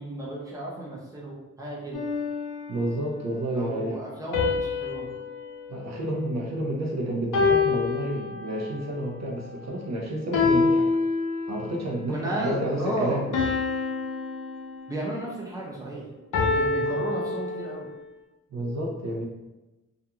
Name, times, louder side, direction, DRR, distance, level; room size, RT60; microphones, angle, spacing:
voice 1, 0.0-2.1 3.5-5.1 12.1-13.2 14.9-16.1 16.5-17.9, right 2 dB, 10° right, -5 dB, 0.7 m, -33 dB
sound 1, 1.9-3.1 4.3-6.8 7.3-8.8 10.3-11.8 13.3-15.2 16.3-18.0, left 4 dB, 80° left, 0.6 m, -27 dB
voice 2, 2.7-4.0 5.7-10.9 11.5-13.2 16.8-17.1 18.5-19.3, right 1 dB, 60° right, -1 dB, 0.5 m, -30 dB
2.4 x 2.3 x 2.8 m, 1.1 s
wide cardioid pair, 120°, 31 cm